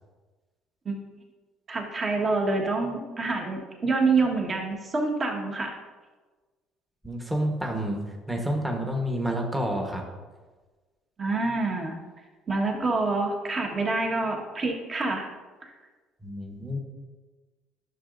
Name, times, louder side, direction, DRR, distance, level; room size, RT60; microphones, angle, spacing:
voice 1, 1.7-5.8 11.2-11.9 12.5-15.3 15.6-15.7, right 3 dB, 30° right, 1 dB, 1.4 m, -27 dB
voice 2, 7.0-8.0 8.3-10.0 16.2-16.8, equal, 10° right, 1 dB, 1.2 m, -29 dB
11.0 x 6.4 x 2.6 m, 1.3 s
cardioid pair, 110°, 0 cm